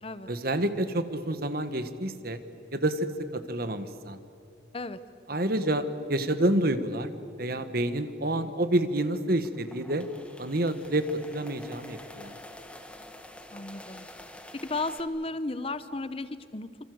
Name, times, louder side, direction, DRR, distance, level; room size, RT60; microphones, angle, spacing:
voice 1, 0.3-2.4 2.7-4.2 5.3-7.1 7.4-10.1 10.4-12.3, right 1 dB, 50° right, 11 dB, 1.5 m, -28 dB
sound 1, 9.4-15.0, left 1 dB, 5° left, 1.5 m, -47 dB
voice 2, 13.5-14.1 14.5-16.8, left 2 dB, 30° left, 13 dB, 0.8 m, -34 dB
27.0 x 27.0 x 7.8 m, 2.6 s
head